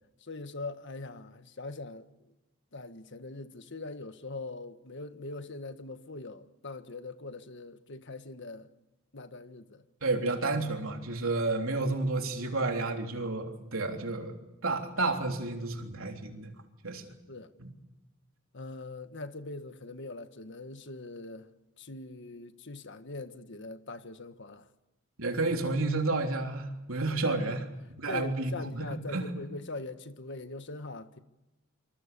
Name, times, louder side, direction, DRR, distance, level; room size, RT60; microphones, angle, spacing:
voice 1, 0.2-2.1 2.7-8.7 9.1-9.8 17.3-17.5 18.5-21.5 21.8-24.7 27.2-27.5 28.1-31.2, left 3 dB, 60° left, 1.6 m, -42 dB
voice 2, 10.0-14.3 14.6-16.5 16.8-17.1 17.6-17.7 25.2-27.6 28.0-29.4, right 2 dB, 75° right, 3.5 m, -31 dB
27.0 x 24.5 x 6.9 m
head